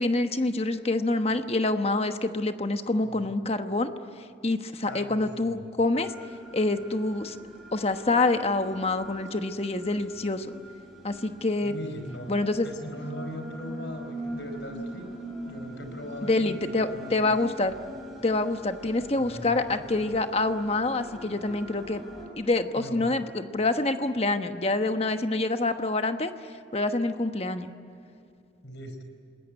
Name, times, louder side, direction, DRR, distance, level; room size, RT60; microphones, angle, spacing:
voice 1, 0.0-3.9 4.4-6.1 6.5-7.4 7.7-10.5 11.0-11.7 12.3-12.7 16.2-17.8 18.2-22.0 22.4-26.3 26.7-27.7, left 2 dB, 35° left, 8 dB, 1.1 m, -26 dB
voice 2, 4.8-5.6 11.6-12.3 12.6-17.3 19.2-19.9 22.7-23.1 28.6-29.0, equal, 85° left, 6 dB, 4.5 m, -40 dB
sound 1, 6.0-22.3, right 1 dB, ahead, 5.8 m, -43 dB
28.0 x 20.5 x 9.6 m, 2.5 s
head